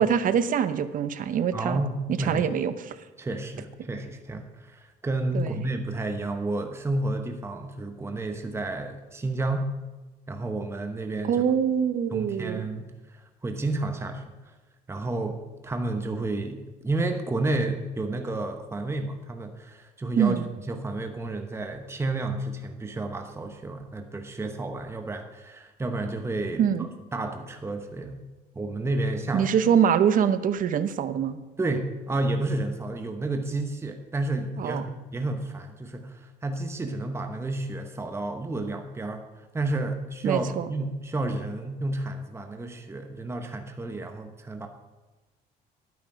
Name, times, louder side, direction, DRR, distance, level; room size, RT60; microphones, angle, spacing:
voice 1, 0.0-1.8 2.2-3.0 5.3-5.6 11.2-12.7 20.2-20.5 26.6-26.9 29.3-31.4 34.6-34.9 40.2-40.7, right 8 dB, 55° right, 12 dB, 0.8 m, -24 dB
voice 2, 1.5-2.5 3.2-9.7 10.3-11.5 12.1-14.5 14.9-15.4 15.6-20.4 20.7-26.6 27.1-28.2 28.5-29.5 31.6-44.7, right 2 dB, 15° right, 5 dB, 1.0 m, -31 dB
11.5 x 9.4 x 5.0 m, 1.2 s
cardioid pair, 110°, 17 cm